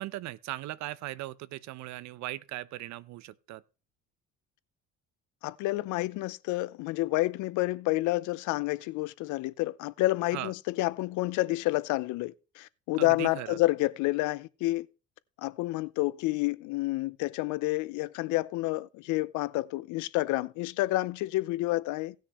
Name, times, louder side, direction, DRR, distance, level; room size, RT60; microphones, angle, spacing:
voice 1, 0.0-3.6 10.3-10.5 13.0-13.6, right 16 dB, 65° right, 0.8 m, -38 dB
voice 2, 5.4-14.9 15.4-22.1, left 19 dB, 75° left, 0.7 m, -29 dB
18.0 x 6.6 x 3.1 m
cardioid pair, 120°, 30 cm